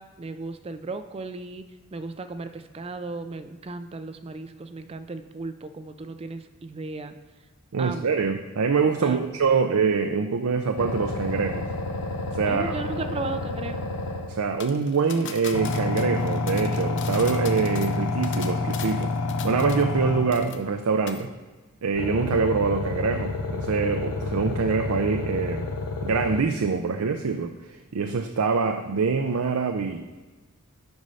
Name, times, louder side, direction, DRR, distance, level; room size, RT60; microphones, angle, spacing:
voice 1, 0.0-7.2 7.8-8.2 9.0-9.4 12.5-13.9, right 3 dB, 25° right, 9 dB, 0.4 m, -35 dB
voice 2, 7.7-11.6 12.3-12.8 14.3-19.1 19.4-21.3 21.8-25.7 26.0-27.5 27.9-30.0, right 5 dB, 80° right, 6 dB, 0.5 m, -24 dB
sound 1, 10.8-14.5 15.5-20.5 22.0-26.4, left 3 dB, 90° left, 0.9 m, -29 dB
sound 2, 14.6-20.0 20.3-20.8 21.1-21.2, left 8 dB, 55° left, 0.6 m, -40 dB
8.0 x 5.3 x 5.5 m, 1.3 s
head